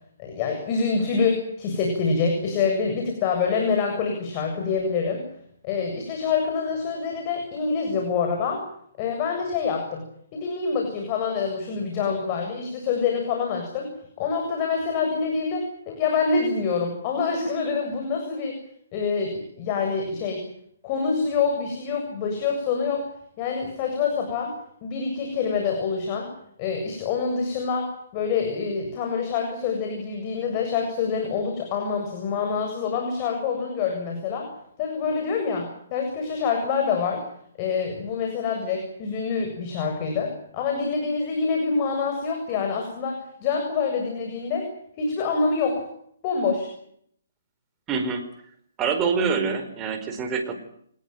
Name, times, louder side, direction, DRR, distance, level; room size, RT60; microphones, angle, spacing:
voice 1, 0.2-5.2 5.6-8.6 9.0-10.0 10.3-13.9 14.2-18.6 18.9-20.4 20.8-23.1 23.4-24.5 24.8-26.3 26.6-34.5 34.8-37.2 37.6-44.7 45.0-45.8 46.2-46.7, left 5 dB, 30° left, 3 dB, 7.6 m, -26 dB
voice 2, 47.9-48.2 48.8-50.6, right 5 dB, 20° right, 6 dB, 4.6 m, -25 dB
26.0 x 20.5 x 9.3 m, 0.68 s
hypercardioid pair, 155°, 0 cm